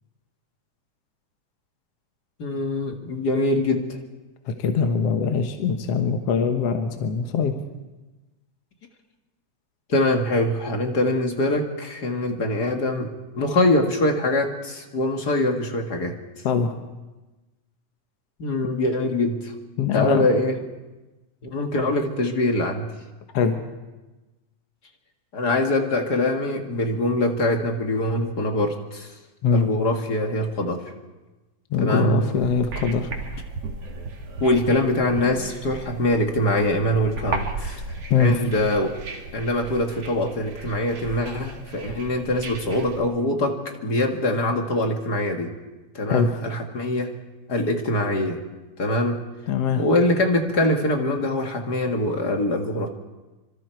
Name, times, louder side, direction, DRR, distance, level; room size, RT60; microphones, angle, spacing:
voice 1, 2.4-3.9 9.9-16.2 18.4-19.5 19.9-20.6 21.5-22.9 25.3-29.1 29.5-30.8 31.8-32.3 34.4-37.8 38.2-38.9 39.3-45.5 45.9-47.1 47.5-48.4 48.8-49.2 49.8-52.9, left 1 dB, 35° left, 3 dB, 1.8 m, -23 dB
voice 2, 4.5-7.5 16.4-16.7 19.8-20.3 23.3-23.6 29.4-29.7 31.7-33.1 38.1-38.4 46.1-46.4 49.5-49.8, left 6 dB, 60° left, 5 dB, 2.0 m, -22 dB
sound 1, 32.3-43.0, right 3 dB, 50° right, 3.0 m, -35 dB
26.5 x 25.5 x 4.6 m, 1.1 s
omnidirectional pair, 3.7 m